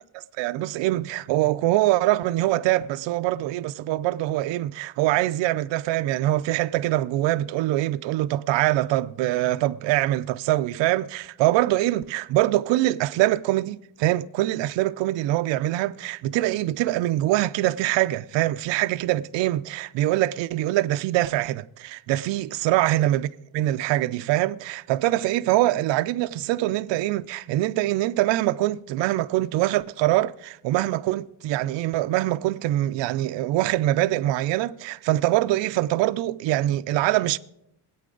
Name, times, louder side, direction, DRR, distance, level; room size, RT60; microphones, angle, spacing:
voice 1, 0.1-37.4, right 15 dB, 75° right, 0.6 m, -24 dB
23.5 x 8.5 x 3.9 m
cardioid pair, 150°, 44 cm